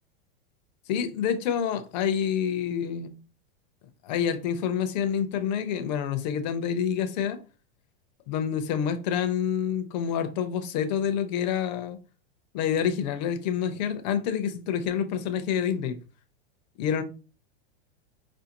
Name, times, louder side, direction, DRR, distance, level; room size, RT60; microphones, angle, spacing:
voice 1, 0.9-3.1 4.0-7.4 8.3-12.0 12.5-16.0 16.8-17.0, left 8 dB, 45° left, 0.6 m, -27 dB
4.8 x 2.6 x 2.8 m
supercardioid pair, 165°, 31 cm